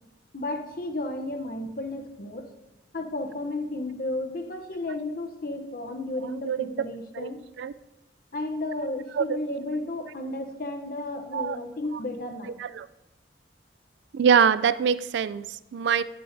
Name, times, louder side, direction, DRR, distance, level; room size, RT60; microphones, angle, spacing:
voice 1, 0.3-2.5 2.9-7.4 8.3-12.5, left 2 dB, 55° left, 0.8 m, -33 dB
voice 2, 6.2-6.8 7.1-7.3 7.6-7.7 9.1-9.4 11.3-11.6 11.9-12.0 12.6-12.9 14.1-16.0, right 7 dB, 80° right, 0.3 m, -24 dB
14.5 x 7.7 x 2.7 m
head